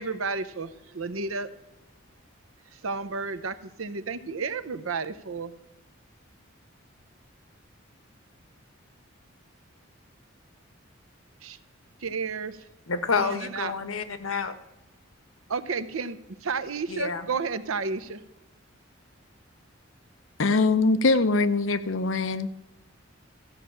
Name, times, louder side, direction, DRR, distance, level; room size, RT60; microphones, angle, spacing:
voice 1, 0.0-1.5 2.7-5.6 11.4-11.6 12.0-12.6 13.2-13.7 15.5-18.2, right 4 dB, 85° right, 0.8 m, -32 dB
voice 2, 12.9-14.6 16.9-17.3, left 4 dB, 90° left, 1.1 m, -28 dB
voice 3, 20.4-22.5, left 3 dB, 65° left, 0.7 m, -22 dB
14.0 x 5.7 x 8.6 m
head